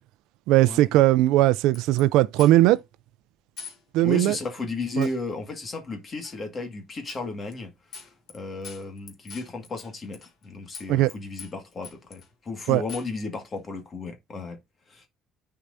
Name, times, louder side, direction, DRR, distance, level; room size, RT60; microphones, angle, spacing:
voice 1, 0.5-2.8 3.9-4.4 5.0-5.1 10.9-11.1 12.7-12.8, right 15 dB, 90° right, 0.4 m, -19 dB
sound 1, 1.7-2.0 2.4-2.8 3.6-3.8 4.1-4.2 5.0-5.2 6.2-6.4 7.1-7.2 7.5-7.6 7.9-8.4 8.6-10.5 10.7-11.1 11.4-12.3 12.9-13.2, left 6 dB, 45° left, 1.8 m, -43 dB
voice 2, 4.0-14.6 14.9-15.1, left 3 dB, 25° left, 1.9 m, -34 dB
10.0 x 4.7 x 2.7 m
cardioid pair, 175°, 0 cm